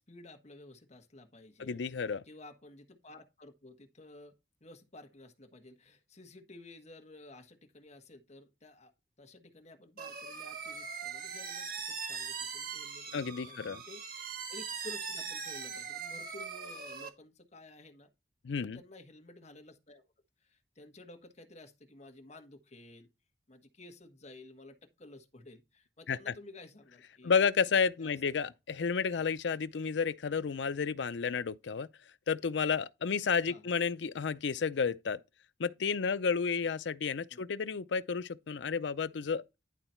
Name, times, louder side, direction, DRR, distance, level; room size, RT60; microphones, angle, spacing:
voice 1, 0.0-1.8 2.2-4.3 4.6-8.9 9.2-18.1 18.6-20.0 20.4-23.1 23.5-27.4 28.0-28.2 33.5-33.7 37.3-37.4, left 2 dB, 40° left, 1.4 m, -53 dB
voice 2, 1.6-2.2 13.1-13.8 18.4-18.8 26.1-26.2 27.2-31.9 32.3-35.2 35.6-39.4, left 5 dB, 90° left, 0.5 m, -31 dB
sound 1, 10.0-17.1, right 6 dB, 55° right, 1.4 m, -41 dB
11.0 x 4.0 x 4.4 m
head